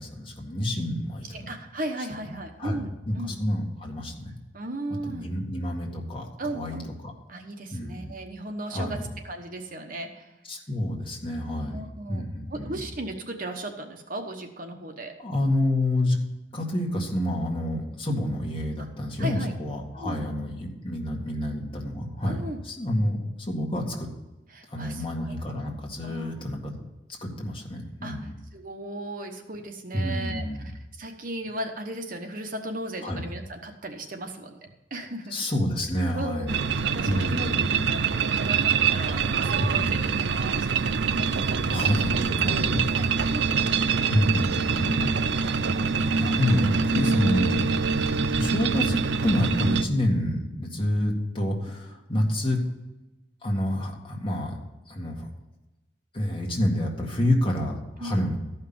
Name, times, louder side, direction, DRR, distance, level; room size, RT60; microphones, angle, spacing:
voice 1, 0.0-1.3 2.3-4.4 5.0-6.8 7.0-7.1 7.7-8.1 8.7-9.0 10.5-11.8 12.1-12.8 15.2-16.2 16.5-24.1 24.7-26.8 27.2-28.3 29.9-30.7 33.0-33.2 35.3-36.6 37.0-37.9 39.6-40.1 41.7-42.8 44.1-47.7 48.3-52.6 53.4-54.6 54.9-55.3 56.1-58.4, left 1 dB, 30° left, 0 dB, 1.9 m, -28 dB
voice 2, 1.2-3.4 4.5-5.3 6.4-6.9 7.3-10.3 11.7-12.2 12.5-15.2 19.2-19.5 20.0-20.2 22.3-22.6 24.5-25.1 26.0-26.3 28.0-35.4 36.1-37.5 37.9-41.0 42.5-43.6 43.8-44.1 58.0-58.2, right 1 dB, 45° right, 5 dB, 1.1 m, -36 dB
sound 1, 36.5-49.8, right 5 dB, 60° right, 0.5 m, -25 dB
13.5 x 5.7 x 6.9 m, 1.0 s
head